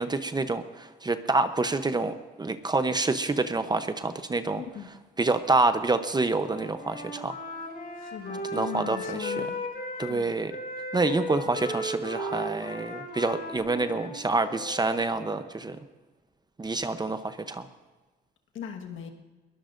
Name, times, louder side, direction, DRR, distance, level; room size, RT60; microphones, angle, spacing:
voice 1, 0.0-4.6 5.2-7.3 8.5-9.5 10.0-10.5 10.9-15.8 16.6-17.7, right 3 dB, 20° right, 10 dB, 0.8 m, -27 dB
voice 2, 4.6-4.9 8.0-9.6 10.1-10.3 16.6-16.9 18.5-19.1, left 8 dB, 80° left, 3 dB, 1.5 m, -39 dB
Wind instrument woodwind instrument, 6.4-10.2 10.5-15.0, left 1 dB, 50° left, 6.2 m, -36 dB
22.0 x 18.5 x 2.6 m, 1.3 s
cardioid pair, 90°, 20 cm